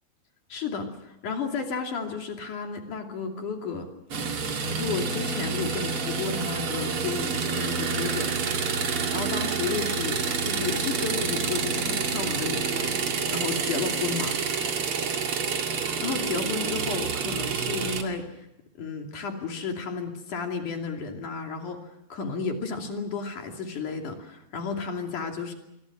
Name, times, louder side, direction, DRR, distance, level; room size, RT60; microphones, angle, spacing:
voice 1, 0.5-3.9 4.7-8.3 9.1-13.0 13.3-14.4 16.0-18.5 18.8-25.5, left 5 dB, 50° left, 3 dB, 3.8 m, -32 dB
sound 1, 4.1-18.0, right 5 dB, 45° right, 2.1 m, -28 dB
26.5 x 24.5 x 6.2 m, 0.85 s
omnidirectional pair, 5.2 m